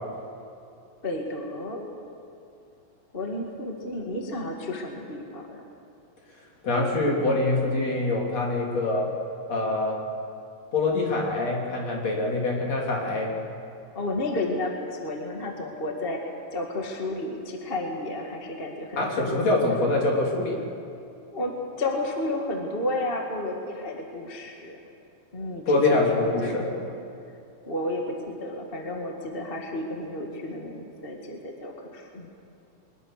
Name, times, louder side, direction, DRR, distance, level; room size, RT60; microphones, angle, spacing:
voice 1, 1.0-2.0 3.1-5.6 13.9-19.3 21.2-24.8 25.3-26.9 27.7-32.3, left 1 dB, 20° left, 1 dB, 1.6 m, -32 dB
voice 2, 6.6-9.1 9.5-10.0 10.7-13.3 19.0-20.6 25.7-26.7, left 2 dB, 50° left, -1 dB, 4.4 m, -24 dB
23.0 x 21.5 x 6.7 m, 2.6 s
omnidirectional pair, 3.9 m